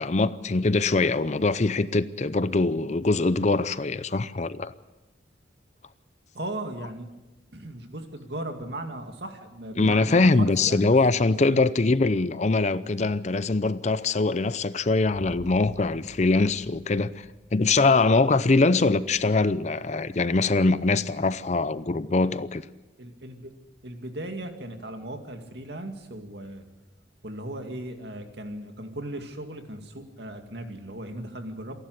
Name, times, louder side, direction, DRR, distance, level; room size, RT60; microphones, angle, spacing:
voice 1, 0.0-4.7 9.8-17.2 17.5-22.6, left 3 dB, 40° left, 0.6 m, -23 dB
voice 2, 6.3-7.1 7.5-11.6 21.2-21.4 23.0-23.5 23.8-26.6 27.2-31.7, right 1 dB, 65° right, 2.4 m, -37 dB
Boom, 15.1-22.9, right 1 dB, 35° right, 5.6 m, -51 dB
28.0 x 11.5 x 8.1 m
head